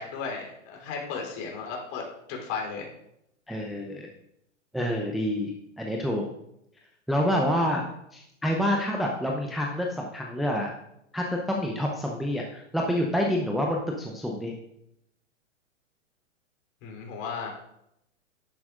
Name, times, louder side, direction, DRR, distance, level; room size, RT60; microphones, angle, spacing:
voice 1, 0.0-2.0 2.3-2.9 16.8-17.5, left 5 dB, 40° left, 0 dB, 3.5 m, -35 dB
voice 2, 3.5-4.1 4.7-5.5 5.8-6.3 7.1-10.7 11.1-14.5, equal, ahead, -1 dB, 0.7 m, -27 dB
11.5 x 10.5 x 2.5 m, 0.80 s
figure-of-eight pair, 110°, 39 cm